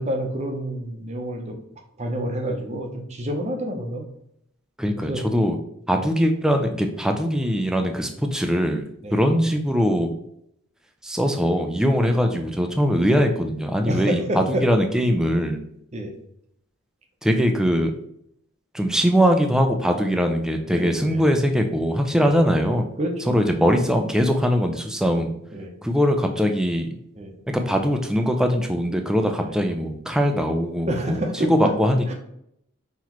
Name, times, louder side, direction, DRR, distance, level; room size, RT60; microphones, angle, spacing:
voice 1, 0.0-1.5 2.0-4.0 5.0-5.2 5.9-6.0 9.0-9.2 12.0-12.1 12.9-13.1 13.8-14.6 15.9-16.1 20.7-21.2 22.2-22.4 23.0-23.7 25.1-25.2 25.5-25.7 27.2-27.3 29.4-29.5 30.9-31.5 32.1-32.2, right 1 dB, 30° right, 3 dB, 0.7 m, -29 dB
voice 2, 4.8-5.6 5.9-8.8 9.1-10.1 11.0-15.6 17.2-17.9 18.7-22.9 23.3-25.3 25.8-26.9 27.5-31.2 31.5-32.1, equal, 5° right, 4 dB, 0.3 m, -21 dB
5.7 x 3.1 x 3.0 m, 0.74 s
head